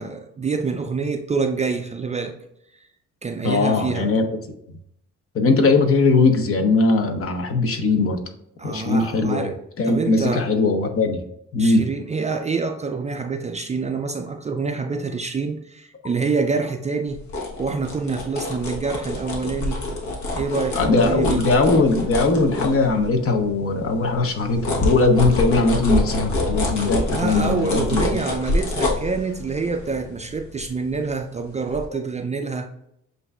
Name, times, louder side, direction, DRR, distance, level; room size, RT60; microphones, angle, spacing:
voice 1, 0.0-2.4 3.2-4.1 8.6-9.6 9.8-10.5 11.6-17.2 17.6-19.8 20.3-21.4 27.1-32.7, right 4 dB, 25° right, 0.4 m, -26 dB
voice 2, 3.4-4.3 5.3-8.2 8.6-11.2 11.5-11.9 20.7-28.2, left 3 dB, 50° left, 0.8 m, -20 dB
sound 1, 17.1-23.4 23.8-31.3 31.7-31.8, left 2 dB, 70° left, 1.2 m, -26 dB
7.7 x 2.6 x 2.3 m
cardioid pair, 90°, 30 cm